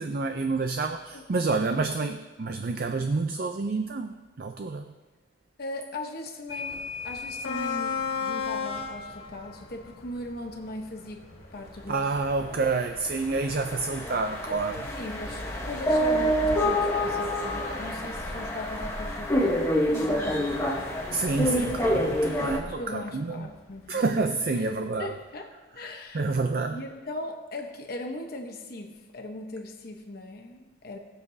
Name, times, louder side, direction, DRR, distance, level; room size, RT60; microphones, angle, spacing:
voice 1, 0.0-4.9 11.9-14.9 21.1-23.5 23.9-25.1 26.1-26.8, right 3 dB, 45° right, 6 dB, 0.5 m, -28 dB
voice 2, 5.6-11.3 11.5-12.0 15.0-20.9 22.7-24.1 24.6-24.7 25.0-26.2 26.7-31.0, left 1 dB, 50° left, 3 dB, 0.9 m, -39 dB
locomotive w whistle, 6.5-24.2, left 5 dB, 90° left, 2.1 m, -39 dB
sound 1, 12.4-12.6 12.9-22.6, equal, 15° left, 1.0 m, -27 dB
20.0 x 7.3 x 2.7 m, 1.3 s
head